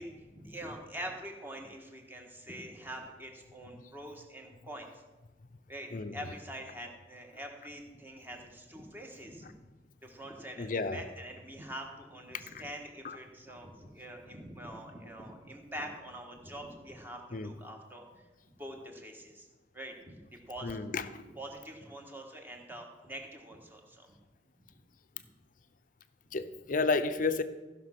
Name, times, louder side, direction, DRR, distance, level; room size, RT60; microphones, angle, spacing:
voice 1, 0.0-4.9 5.7-9.5 10.0-18.2 18.6-19.5 19.7-20.8 21.3-24.1 24.6-24.7, right 1 dB, 10° right, 2 dB, 1.6 m, -45 dB
voice 2, 5.9-6.2 10.6-11.0 12.3-12.5 13.0-13.2 17.3-17.5 20.6-21.2 26.3-27.4, left 3 dB, 50° left, 11 dB, 0.6 m, -32 dB
14.5 x 6.0 x 5.9 m, 1.2 s
head